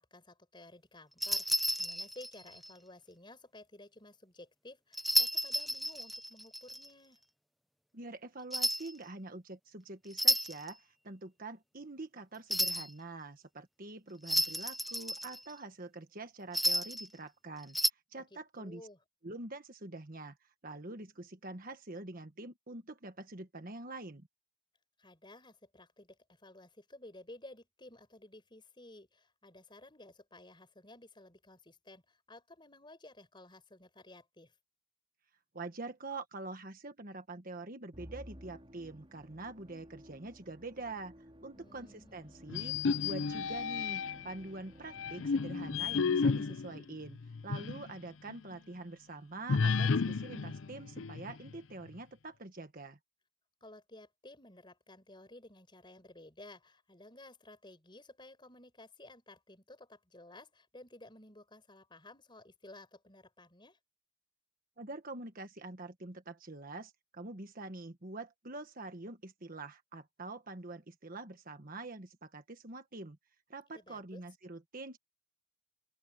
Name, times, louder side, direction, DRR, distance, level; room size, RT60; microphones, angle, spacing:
voice 1, 0.0-7.2 18.2-18.3 18.6-19.0 25.0-34.5 41.5-42.2 53.6-63.8 73.7-74.2, left 2 dB, 20° left, 6.2 m, -54 dB
sound 1, 1.2-2.7 4.9-6.9 8.5-8.9 10.1-10.7 12.5-12.9 14.2-15.5 16.5-17.1 17.6-17.9, equal, ahead, 0.4 m, -32 dB
voice 2, 7.9-17.8 18.1-18.8 19.2-20.4 20.6-24.3 35.5-41.1 41.4-42.8 43.0-53.0 64.8-73.2 73.5-75.0, right 2 dB, 40° right, 1.4 m, -45 dB
Musical instrument, 37.9-46.4, equal, 25° right, 3.7 m, -56 dB
sound 2, 42.5-44.3 44.9-47.9 48.3-48.4 49.5-51.6, left 5 dB, 65° left, 0.6 m, -32 dB
open air
head